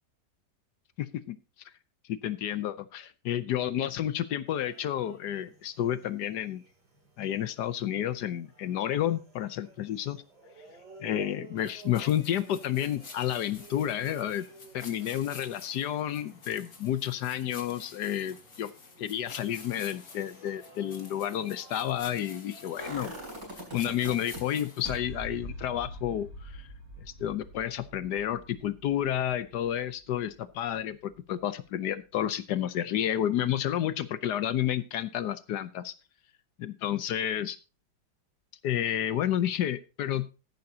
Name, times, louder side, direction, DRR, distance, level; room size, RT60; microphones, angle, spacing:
voice 1, 1.0-1.4 2.1-6.6 7.2-10.2 11.0-14.4 14.7-18.7 19.0-23.1 23.7-26.7 27.0-35.9 36.6-37.6 38.6-40.3, left 11 dB, 70° left, 14 dB, 1.2 m, -30 dB
sound 1, 4.5-24.4, right 4 dB, 75° right, 6.2 m, -54 dB
sound 2, 11.6-25.0, left 4 dB, 50° left, 2.3 m, -50 dB
sound 3, 22.8-24.4 24.8-30.7 31.0-31.1, right 1 dB, 50° right, 5.4 m, -43 dB
14.0 x 10.5 x 2.8 m, 0.31 s
omnidirectional pair, 2.0 m